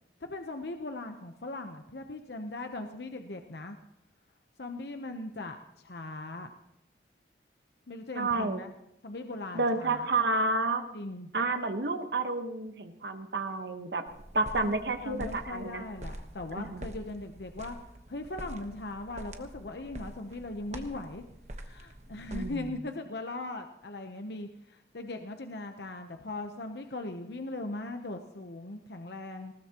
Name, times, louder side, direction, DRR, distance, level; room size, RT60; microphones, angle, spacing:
voice 1, 0.2-3.8 4.6-6.5 7.9-8.7 9.0-10.1 10.9-11.3 15.0-17.8 18.1-21.2 21.5-29.5, left 2 dB, 70° left, 5 dB, 0.9 m, -39 dB
voice 2, 8.1-8.6 9.5-10.8 11.3-14.0 14.3-15.8 16.5-16.8 22.3-22.7, right 2 dB, 70° right, 7 dB, 1.3 m, -30 dB
sound 1, 14.1-22.7, right 1 dB, 40° right, 1.2 m, -45 dB
20.0 x 18.5 x 3.0 m, 0.80 s
head